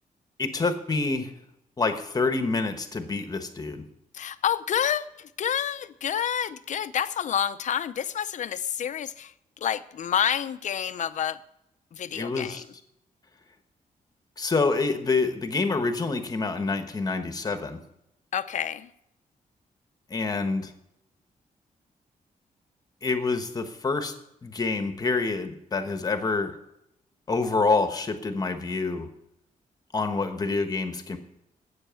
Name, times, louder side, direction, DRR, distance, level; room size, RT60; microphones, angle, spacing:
voice 1, 0.4-1.3 1.8-3.9 12.1-12.6 14.4-17.8 20.1-20.7 23.0-24.1 24.4-26.5 27.3-29.1 29.9-31.2, left 3 dB, 25° left, 8 dB, 1.2 m, -27 dB
voice 2, 4.1-11.4 11.9-12.7 18.3-18.9, left 9 dB, 55° left, 14 dB, 0.6 m, -29 dB
12.5 x 8.5 x 7.0 m, 0.81 s
wide cardioid pair, 160°, 15 cm